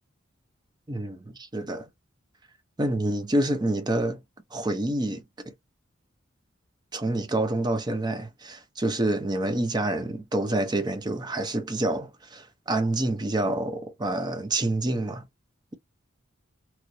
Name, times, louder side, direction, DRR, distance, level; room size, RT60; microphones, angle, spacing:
voice 1, 0.9-1.9 2.8-4.2 4.5-5.2 6.9-15.2, right 1 dB, 20° right, 0.6 m, -27 dB
3.0 x 2.5 x 3.0 m
head